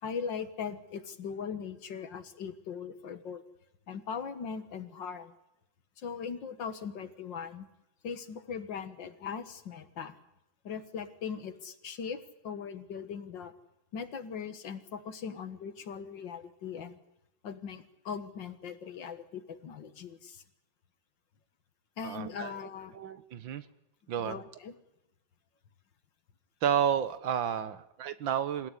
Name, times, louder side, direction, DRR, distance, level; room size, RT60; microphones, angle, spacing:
voice 1, 0.0-3.4 3.9-5.3 6.0-7.7 8.0-10.2 10.6-13.5 13.9-17.0 17.4-20.4 22.0-23.0 24.2-24.7, left 6 dB, 65° left, 11 dB, 2.1 m, -40 dB
voice 2, 22.0-22.5 22.9-23.6 24.1-24.4 26.6-28.7, right 9 dB, 70° right, 13 dB, 1.8 m, -31 dB
27.0 x 16.0 x 10.0 m, 0.87 s
omnidirectional pair, 2.2 m